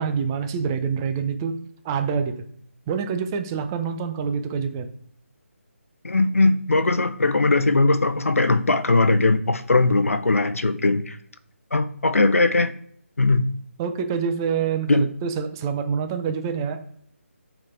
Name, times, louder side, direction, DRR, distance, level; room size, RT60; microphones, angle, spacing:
voice 1, 0.0-1.6 1.8-2.3 2.9-4.9 13.8-16.8, right 6 dB, 15° right, 7 dB, 0.5 m, -26 dB
voice 2, 6.0-11.2 11.7-12.7 13.2-13.4 14.9-15.1, left 3 dB, 85° left, 12 dB, 0.7 m, -20 dB
6.1 x 4.2 x 4.4 m, 0.65 s
figure-of-eight pair, 160°, 7 cm